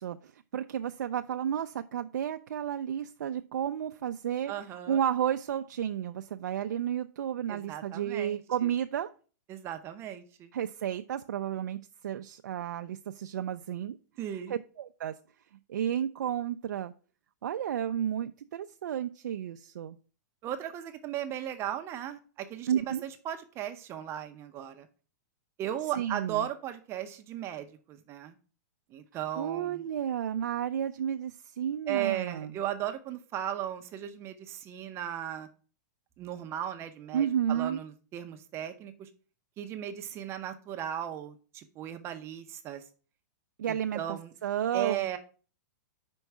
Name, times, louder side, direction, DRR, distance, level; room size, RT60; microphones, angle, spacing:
voice 1, 0.0-4.5 4.9-9.1 10.5-14.0 14.5-15.1 15.7-16.9 17.4-20.0 22.7-23.0 25.9-26.5 29.3-32.5 37.1-37.8 43.6-44.0 44.4-45.2, right 9 dB, 85° right, 7 dB, 0.4 m, -32 dB
voice 2, 4.5-5.0 7.5-8.7 9.5-10.5 14.2-14.6 20.4-24.9 25.6-28.3 28.9-29.8 31.9-35.5 36.2-39.1 39.6-42.8 43.7-44.3 44.7-45.2, right 11 dB, 25° right, 8 dB, 0.7 m, -36 dB
5.3 x 4.6 x 5.9 m, 0.38 s
hypercardioid pair, 145°, 10 cm